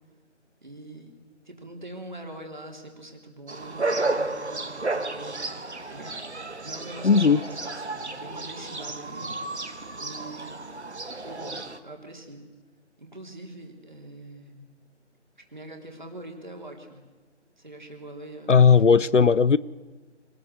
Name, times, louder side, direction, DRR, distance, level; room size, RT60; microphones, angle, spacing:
voice 1, 0.6-1.1 1.4-5.6 5.9-9.7 10.0-10.5 11.2-12.5 13.0-14.7 15.4-17.0 17.6-19.1, right 1 dB, 40° right, 3.7 m, -43 dB
sound 1, 3.5-11.8, right 2 dB, 65° right, 1.6 m, -32 dB
voice 2, 7.0-7.4 18.5-19.6, left 5 dB, 80° left, 0.9 m, -17 dB
25.5 x 19.5 x 8.1 m
figure-of-eight pair, 180°, 36 cm